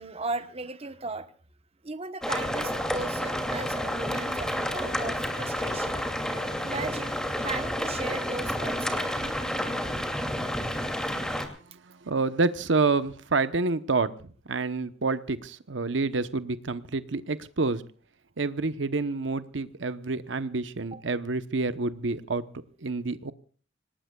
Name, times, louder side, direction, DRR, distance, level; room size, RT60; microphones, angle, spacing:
voice 1, 0.0-1.3 1.8-6.1 6.6-9.4 20.9-21.0, right 3 dB, 35° right, 1.1 m, -37 dB
sound 1, 2.2-11.5, equal, 5° left, 2.6 m, -30 dB
voice 2, 11.7-14.1 14.5-17.8 18.4-22.5 22.8-23.3, right 3 dB, 80° right, 1.0 m, -28 dB
26.0 x 19.0 x 2.4 m
head